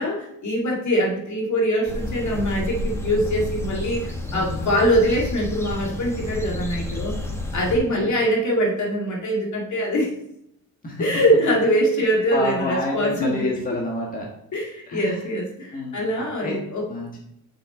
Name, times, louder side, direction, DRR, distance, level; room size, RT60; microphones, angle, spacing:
voice 1, 0.0-7.2 7.5-10.1 11.0-13.5 14.5-16.9, equal, 50° left, -2 dB, 2.3 m, -23 dB
sound 1, 1.9-7.8, left 2 dB, 5° left, 1.4 m, -30 dB
voice 2, 4.3-4.7 7.7-8.1 10.8-11.0 12.3-14.3 14.9-15.2 15.7-16.6 16.9-17.2, left 1 dB, 20° left, -2 dB, 1.8 m, -29 dB
6.6 x 6.3 x 3.9 m, 0.77 s
cardioid pair, 105°, 37 cm